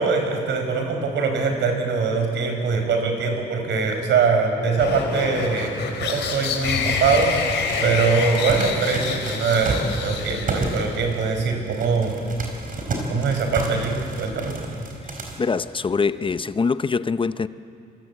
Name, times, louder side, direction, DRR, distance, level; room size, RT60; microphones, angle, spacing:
voice 1, 0.0-5.7 6.0-12.2 13.1-14.6, right 4 dB, 80° right, 4 dB, 5.2 m, -22 dB
sound 1, 4.8-11.0, left 5 dB, 85° left, 3.5 m, -27 dB
sound 2, 6.8-15.4, right 2 dB, 50° right, 4.9 m, -31 dB
voice 2, 15.4-17.5, left 5 dB, 30° left, 13 dB, 0.6 m, -23 dB
27.0 x 25.0 x 8.2 m, 2.7 s
cardioid pair, 115°, 18 cm